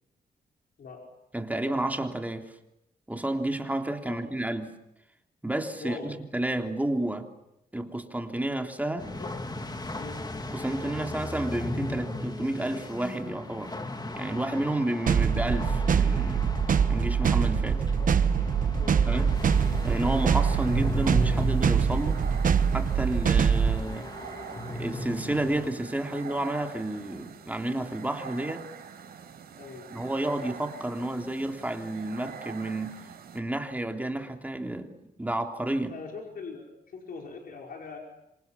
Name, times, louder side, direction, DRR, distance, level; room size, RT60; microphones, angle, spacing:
voice 1, 1.3-2.5 3.1-4.7 5.4-7.3 7.7-9.1 10.5-13.7 14.1-16.5 16.9-17.8 19.0-19.3 19.8-22.2 22.7-24.1 24.8-28.7 29.9-33.0 33.3-34.9 35.2-35.9, right 1 dB, 10° right, 4 dB, 3.5 m, -31 dB
voice 2, 5.8-6.1 9.2-9.3 9.9-10.2 15.1-15.2 17.7-18.1 18.8-19.1 29.6-29.9 35.9-38.0, left 4 dB, 70° left, 0 dB, 5.2 m, -42 dB
sound 1, 9.0-25.7, left 1 dB, 25° left, 2.3 m, -36 dB
sound 2, 15.1-23.8, right 7 dB, 60° right, 1.2 m, -24 dB
sound 3, 19.3-33.4, right 7 dB, 80° right, 4.9 m, -45 dB
27.0 x 27.0 x 7.2 m, 0.87 s
cardioid pair, 90°, 16 cm